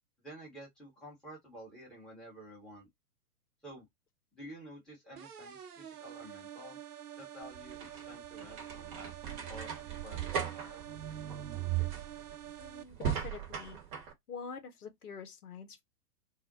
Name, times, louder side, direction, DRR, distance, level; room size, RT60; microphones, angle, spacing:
voice 1, 0.2-2.9 3.6-3.9 4.3-6.8 7.2-10.8, right 1 dB, ahead, 0.8 m, -51 dB
sound 1, 5.2-12.8, right 10 dB, 65° right, 0.7 m, -48 dB
sound 2, 7.4-14.1, right 9 dB, 30° right, 0.8 m, -38 dB
voice 2, 12.6-13.8 14.3-15.8, left 6 dB, 65° left, 0.9 m, -45 dB
2.4 x 2.1 x 3.9 m
figure-of-eight pair, 110°, 48 cm